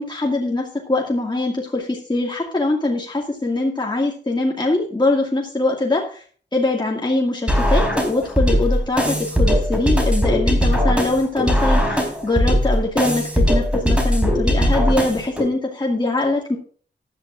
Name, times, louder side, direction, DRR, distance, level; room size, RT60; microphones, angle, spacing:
voice 1, 0.0-6.2 6.5-16.6, left 2 dB, 25° left, -2 dB, 2.2 m, -22 dB
sound 1, 7.5-15.5, equal, 5° right, 4.3 m, -19 dB
15.0 x 11.0 x 2.6 m, 0.43 s
cardioid pair, 55°, 19 cm